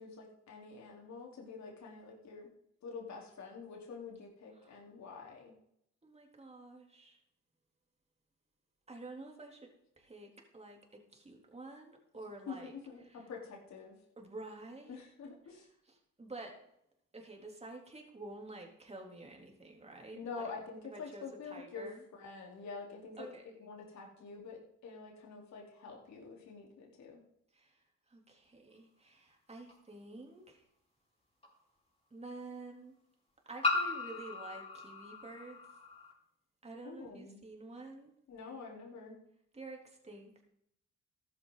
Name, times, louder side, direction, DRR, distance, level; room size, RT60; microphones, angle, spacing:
voice 1, 0.0-2.5 2.8-5.5 12.2-14.0 14.9-15.7 20.1-23.3 23.6-27.2 36.8-37.4 38.3-39.2, left 4 dB, 65° left, -1 dB, 4.3 m, -47 dB
voice 2, 6.0-7.2 8.9-9.7 10.0-12.7 13.0-13.3 14.2-15.0 15.5-15.6 15.9-16.6 17.1-20.5 20.9-22.0 23.2-23.5 27.5-30.6 32.1-32.9 33.5-35.6 36.6-38.1 39.5-40.5, right 2 dB, 20° right, 1 dB, 3.7 m, -49 dB
sound 1, 29.7-29.8 31.4-31.5 33.6-36.1, left 3 dB, 20° left, 5.6 m, -36 dB
14.0 x 11.5 x 4.2 m, 0.74 s
cardioid pair, 90°, 30 cm